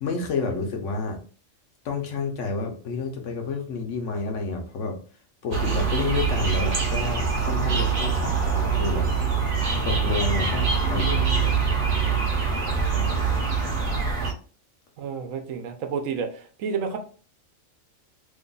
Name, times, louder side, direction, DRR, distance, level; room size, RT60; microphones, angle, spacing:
voice 1, 0.0-1.2 1.8-5.0 5.4-9.1 9.8-11.9 12.8-13.3, left 4 dB, 70° left, 3 dB, 1.1 m, -30 dB
sound 1, 5.5-14.3, right 5 dB, 50° right, 0.8 m, -24 dB
voice 2, 10.8-11.4 15.0-16.3 16.6-17.0, right 6 dB, 80° right, 6 dB, 1.0 m, -30 dB
3.0 x 2.3 x 3.8 m, 0.41 s
omnidirectional pair, 1.3 m